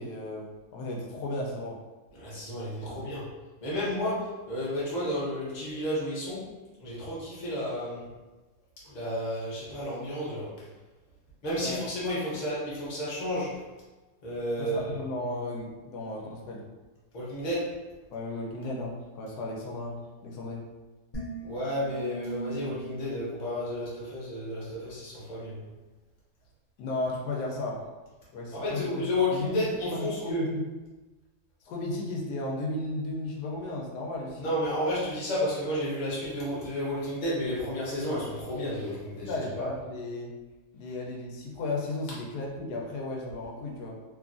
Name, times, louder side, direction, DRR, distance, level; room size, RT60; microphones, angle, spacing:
voice 1, 0.0-1.8 2.8-3.1 11.6-11.8 14.6-16.6 18.1-20.6 26.8-27.8 28.3-29.0 29.3-30.7 31.6-34.5 39.1-40.3 40.7-44.0, left 2 dB, 85° left, -1 dB, 1.2 m, -35 dB
voice 2, 2.1-3.3 3.6-6.4 6.8-8.1 8.8-10.5 11.4-13.6 14.2-15.0 17.1-17.8 21.4-25.6 28.5-30.4 34.4-39.7, left 1 dB, 35° left, -7 dB, 0.9 m, -31 dB
sound 1, 21.1-24.5, right 2 dB, 55° left, 0.4 m, -40 dB
3.0 x 2.3 x 2.5 m, 1.2 s
omnidirectional pair, 1.7 m